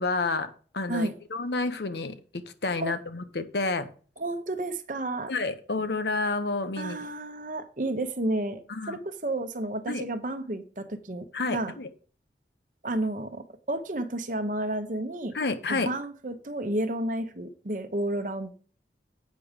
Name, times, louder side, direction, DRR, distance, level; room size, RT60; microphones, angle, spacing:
voice 1, 0.0-2.2 2.6-3.9 5.3-7.0 8.7-9.0 9.9-10.0 11.3-11.9 15.3-15.9, left 3 dB, 75° left, 10 dB, 1.0 m, -29 dB
voice 2, 4.2-5.3 6.8-11.3 11.5-11.7 12.8-15.3 15.7-18.5, right 1 dB, 45° right, 9 dB, 0.9 m, -31 dB
8.4 x 6.0 x 5.1 m, 0.41 s
head